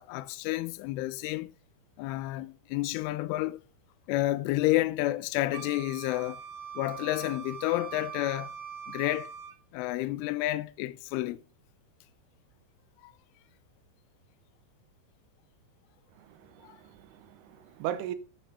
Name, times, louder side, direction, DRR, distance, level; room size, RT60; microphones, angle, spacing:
voice 1, 0.0-1.5 2.0-3.6 4.1-6.4 6.7-8.5 8.9-9.3 9.7-11.4 13.0-13.1 16.6-16.8, left 17 dB, 90° left, 3.1 m, -30 dB
Wind instrument woodwind instrument, 5.5-9.6, right 8 dB, 65° right, 2.3 m, -42 dB
voice 2, 16.2-18.2, right 11 dB, 85° right, 3.3 m, -38 dB
11.0 x 7.3 x 4.1 m
omnidirectional pair, 5.5 m